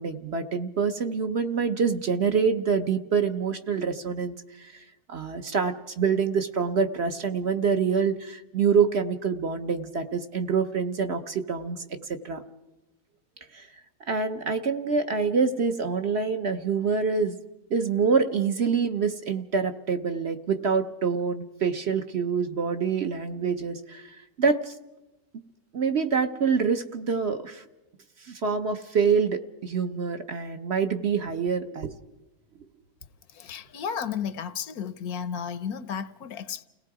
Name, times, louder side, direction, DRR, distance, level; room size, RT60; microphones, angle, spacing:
voice 1, 0.0-12.4 13.5-13.7 14.1-17.4 17.7-24.1 24.4-24.7 25.7-27.6 28.3-31.9, right 5 dB, 50° right, 8 dB, 1.0 m, -26 dB
voice 2, 33.3-36.6, left 7 dB, 75° left, 14 dB, 1.3 m, -33 dB
30.0 x 18.0 x 4.8 m, 1.0 s
omnidirectional pair, 1.6 m